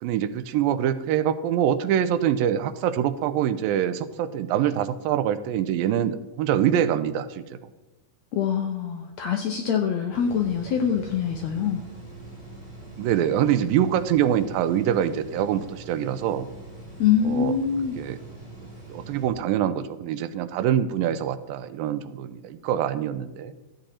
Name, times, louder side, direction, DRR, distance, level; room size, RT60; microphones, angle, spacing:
voice 1, 0.0-7.6 13.0-16.5 17.2-17.5 18.0-18.2 18.9-23.5, right 10 dB, 90° right, 12 dB, 2.4 m, -24 dB
voice 2, 8.3-11.8 17.0-18.0, left 8 dB, 80° left, 4 dB, 1.6 m, -24 dB
sound 1, 10.1-19.3, right 3 dB, 25° left, 4.8 m, -43 dB
13.0 x 8.0 x 4.2 m, 1.1 s
omnidirectional pair, 4.0 m